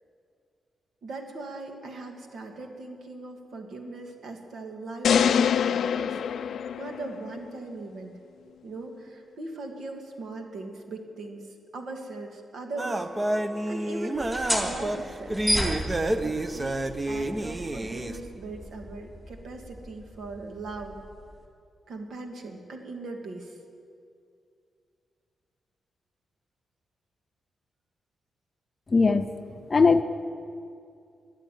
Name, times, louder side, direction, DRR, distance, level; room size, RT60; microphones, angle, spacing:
voice 1, 1.0-8.2 8.6-11.5 11.7-13.1 13.6-14.3 14.6-15.4 16.2-21.0 21.9-23.6, right 2 dB, 75° right, 3 dB, 2.0 m, -40 dB
sound 1, 5.0-7.3, left 8 dB, 80° left, 0.4 m, -24 dB
sound 2, 12.8-18.2, right 1 dB, 25° right, 0.7 m, -29 dB
sound 3, 14.2-21.4, equal, 5° right, 3.1 m, -34 dB
voice 2, 28.9-29.3 29.7-30.0, left 4 dB, 30° left, 9 dB, 0.6 m, -19 dB
14.0 x 10.5 x 9.1 m, 2.4 s
cardioid pair, 110°, 0 cm